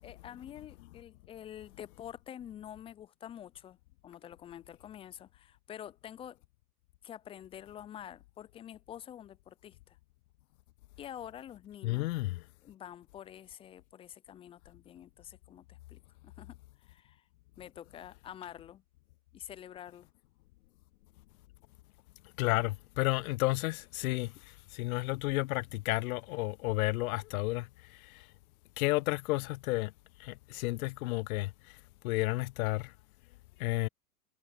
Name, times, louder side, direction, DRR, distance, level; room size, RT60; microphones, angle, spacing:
voice 1, 0.0-3.8 4.0-6.4 7.0-10.0 11.0-12.1 12.6-17.2 17.6-18.8 19.3-20.1, left 10 dB, 15° left, 0.3 m, -48 dB
voice 2, 11.8-12.4 22.4-28.3 28.8-29.9 30.2-31.8 32.0-32.9 33.6-33.9, left 20 dB, 65° left, 0.5 m, -32 dB
hypercardioid pair, 95°, 46 cm